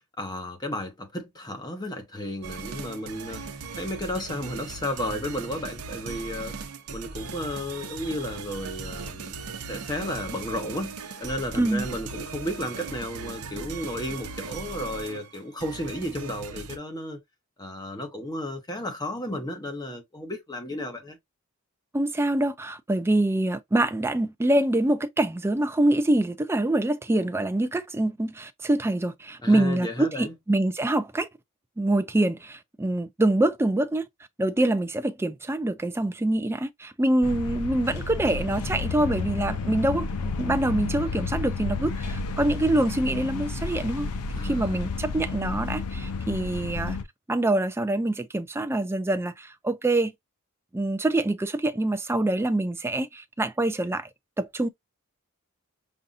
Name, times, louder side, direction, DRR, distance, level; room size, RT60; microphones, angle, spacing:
voice 1, 0.2-3.4 3.8-6.6 6.9-9.4 9.7-17.2 17.6-21.2 29.4-30.3 44.4-44.8, left 1 dB, 20° left, 0.9 m, -33 dB
sound 1, 2.4-16.8, right 4 dB, 85° right, 0.7 m, -38 dB
voice 2, 11.5-11.9 21.9-31.3 31.8-34.1 34.4-44.1 44.4-47.0 47.3-50.1 50.7-54.1 54.4-54.7, right 1 dB, 10° right, 0.4 m, -25 dB
sound 2, 37.2-47.0, left 4 dB, 85° left, 0.5 m, -31 dB
5.4 x 2.5 x 2.5 m
head